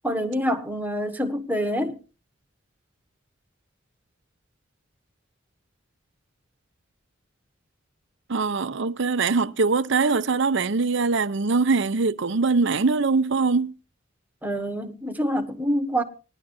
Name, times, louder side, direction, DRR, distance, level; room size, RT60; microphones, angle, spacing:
voice 1, 0.0-2.0 14.4-16.0, equal, 10° right, 1.3 m, -26 dB
voice 2, 8.3-13.7, right 4 dB, 65° right, 0.7 m, -22 dB
20.5 x 11.0 x 2.7 m
head